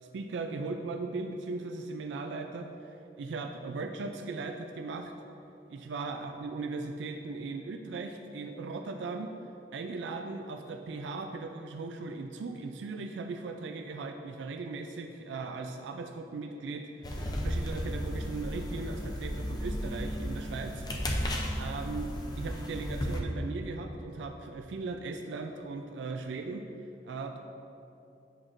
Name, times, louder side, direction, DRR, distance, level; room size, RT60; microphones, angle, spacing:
voice 1, 0.0-5.1 5.7-9.3 9.7-20.9 21.6-22.1 22.4-26.6 27.0-27.4, right 3 dB, 80° right, 4 dB, 0.4 m, -38 dB
sound 1, 17.0-23.2, equal, 20° left, 0.5 m, -34 dB
8.4 x 6.0 x 2.5 m, 2.8 s
head